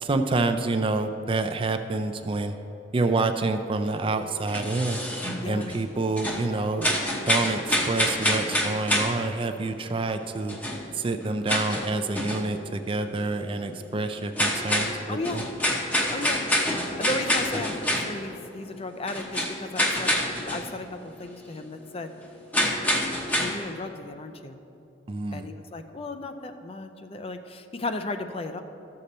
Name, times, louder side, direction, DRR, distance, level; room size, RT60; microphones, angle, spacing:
voice 1, 0.0-2.6 2.9-5.0 5.4-6.9 7.3-10.6 10.9-15.4 25.1-25.5, right 3 dB, 30° right, 8 dB, 0.4 m, -27 dB
sound 1, 3.9-5.9 6.2-9.3 10.2-10.3 10.5-12.5 12.8-12.9 13.2-13.3 13.6-13.7 14.2-18.4 18.7-20.7 21.0-21.1 21.4-21.5 22.5-23.6, equal, 10° left, 0.8 m, -27 dB
voice 2, 5.4-5.7 15.1-15.4 16.1-16.4 17.0-20.2 20.5-22.1 23.4-24.6 25.3-28.6, left 2 dB, 30° left, 8 dB, 0.5 m, -35 dB
13.0 x 6.7 x 4.2 m, 2.9 s
head